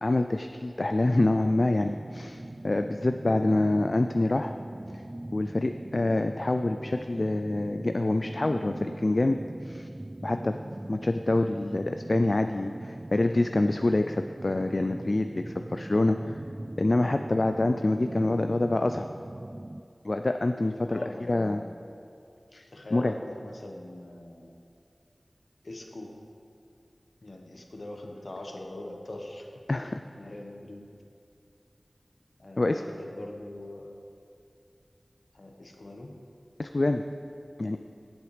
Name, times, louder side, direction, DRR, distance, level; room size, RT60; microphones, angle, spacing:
voice 1, 0.0-4.5 4.9-5.0 5.3-9.9 10.2-10.6 10.9-16.4 16.8-19.1 20.0-21.0 21.3-21.6 22.5-23.1 29.7-30.0 32.6-32.9 36.6-37.0 37.6-37.8, left 2 dB, 55° left, 7 dB, 0.3 m, -26 dB
sound 1, 1.0-19.8, right 1 dB, 40° right, 0.3 m, -41 dB
voice 2, 20.9-21.7 22.7-24.5 25.6-26.2 27.2-29.5 29.8-30.9 32.4-34.0 35.3-36.2, left 1 dB, 70° left, 2 dB, 1.2 m, -42 dB
16.0 x 8.0 x 3.3 m, 2.5 s
wide cardioid pair, 55°, 0 cm